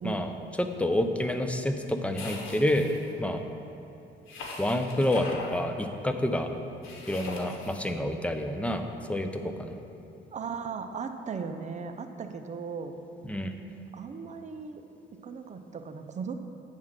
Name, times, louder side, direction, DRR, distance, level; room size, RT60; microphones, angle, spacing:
voice 1, 0.0-0.3 10.3-12.9 13.9-14.8 15.2-16.3, right 5 dB, 35° right, 6 dB, 0.6 m, -37 dB
voice 2, 0.6-2.9 3.2-3.4 4.6-6.5 7.1-9.8 13.3-13.5, left 1 dB, 5° left, 6 dB, 0.5 m, -28 dB
sound 1, 2.1-3.1 4.3-5.5 6.8-7.8, left 3 dB, 90° left, 1.2 m, -40 dB
8.6 x 3.7 x 6.4 m, 2.9 s
cardioid pair, 90°, 20 cm